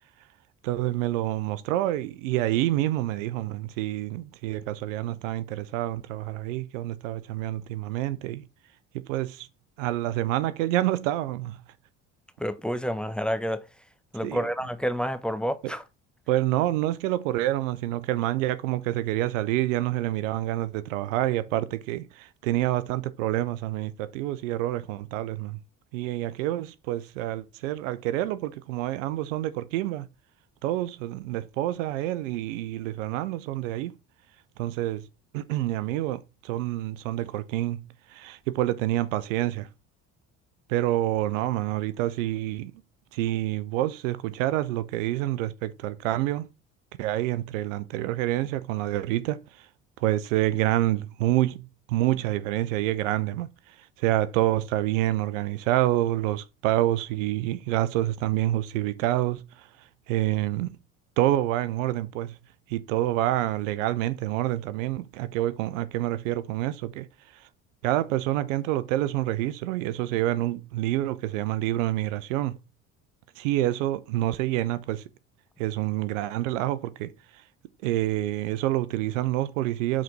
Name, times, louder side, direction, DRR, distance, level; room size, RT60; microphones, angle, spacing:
voice 1, 0.6-8.4 8.9-9.5 9.8-11.6 14.2-14.5 16.3-25.6 25.9-30.1 30.6-33.9 34.6-35.1 35.3-37.8 38.1-39.7 40.7-42.7 43.1-46.5 47.0-49.7 50.0-59.7 60.1-60.7 61.2-62.4 62.7-67.1 67.3-67.4 67.8-72.6 73.4-75.0 75.6-77.1 77.8-80.0, right 14 dB, 90° right, 0.7 m, -27 dB
voice 2, 12.4-13.6 14.1-15.8, equal, ahead, 1.0 m, -29 dB
7.5 x 4.1 x 4.6 m
hypercardioid pair, 65°, 37 cm